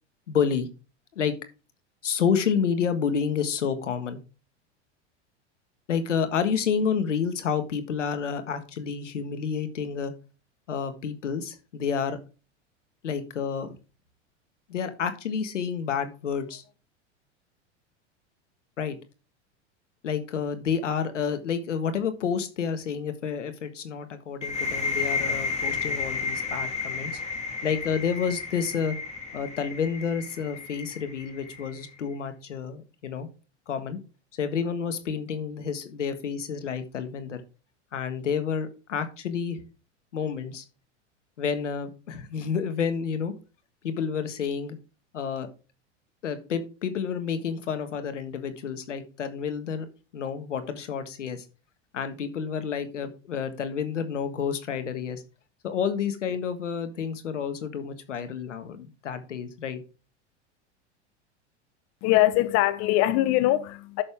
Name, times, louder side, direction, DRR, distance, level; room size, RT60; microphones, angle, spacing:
voice 1, 0.3-0.7 1.1-1.3 2.0-4.2 5.9-10.1 10.7-12.2 13.0-13.8 14.7-16.6 18.8-19.0 20.0-27.2 27.6-28.9 29.3-33.3 33.7-34.0 34.3-37.4 37.9-39.6 40.1-40.6 41.4-43.3 43.8-44.8 45.1-45.5 46.2-49.8 50.1-51.4 51.9-55.2 55.6-59.8, left 6 dB, 85° left, 1.6 m, -29 dB
sound 1, 24.4-31.9, left 4 dB, 20° left, 3.1 m, -32 dB
voice 2, 62.0-64.0, left 15 dB, 50° left, 1.0 m, -22 dB
10.5 x 6.8 x 3.5 m
hypercardioid pair, 90°, 36 cm